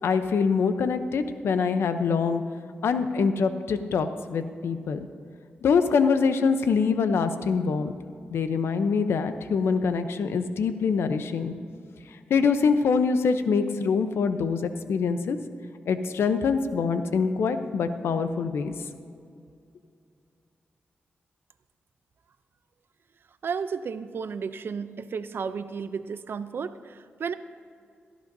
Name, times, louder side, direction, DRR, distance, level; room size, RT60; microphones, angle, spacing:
voice 1, 0.0-2.4 2.8-5.1 5.6-7.9 8.3-11.5 12.1-15.4 15.9-18.7, left 5 dB, 85° left, 9 dB, 0.7 m, -24 dB
voice 2, 23.4-27.3, right 6 dB, 65° right, 12 dB, 0.5 m, -33 dB
17.0 x 13.5 x 2.7 m, 2.4 s
cardioid pair, 80°, 4 cm